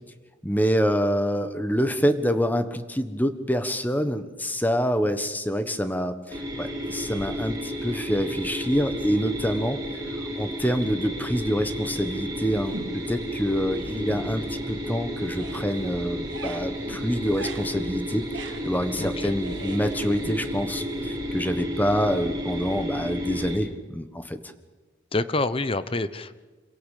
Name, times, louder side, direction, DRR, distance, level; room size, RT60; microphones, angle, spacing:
voice 1, 0.4-9.8 10.4-24.4, equal, 10° left, 9 dB, 1.3 m, -26 dB
sound 1, 6.3-23.5, equal, 20° right, 5.4 m, -32 dB
sound 2, 12.7-13.2 13.6-15.0 15.2-21.8, right 2 dB, 75° right, 2.3 m, -42 dB
voice 2, 19.0-19.3 25.1-26.3, left 2 dB, 30° left, 14 dB, 0.9 m, -27 dB
26.5 x 17.0 x 8.4 m, 1.3 s
head